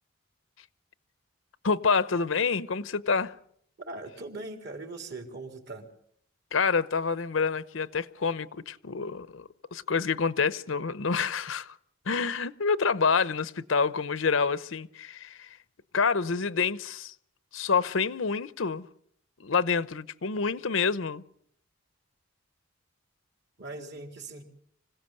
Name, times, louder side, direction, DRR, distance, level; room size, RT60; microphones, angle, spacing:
voice 1, 1.6-3.3 6.5-11.8 12.1-15.5 15.9-17.1 17.5-18.9 19.4-21.2, left 5 dB, 75° left, 0.8 m, -27 dB
voice 2, 3.9-5.9 23.6-24.4, right 2 dB, 60° right, 3.8 m, -40 dB
25.5 x 16.5 x 7.9 m
head